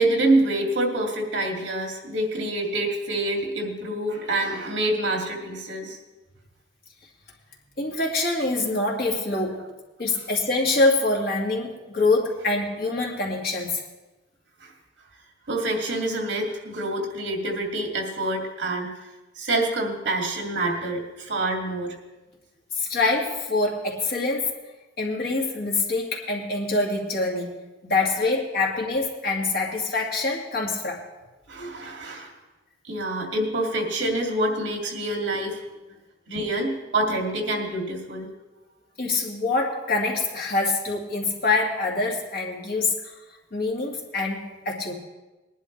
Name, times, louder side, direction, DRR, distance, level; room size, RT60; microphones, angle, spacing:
voice 1, 0.0-6.0 14.6-14.7 15.5-18.9 19.4-22.0 31.5-32.3 32.9-35.6 36.3-38.3, right 1 dB, 70° right, 1 dB, 2.4 m, -26 dB
voice 2, 7.8-9.6 10.0-13.8 22.8-24.5 25.0-27.5 27.8-31.0 39.0-43.1 43.5-44.9, left 3 dB, 55° left, -1 dB, 2.2 m, -25 dB
20.5 x 11.0 x 3.3 m, 1.1 s
head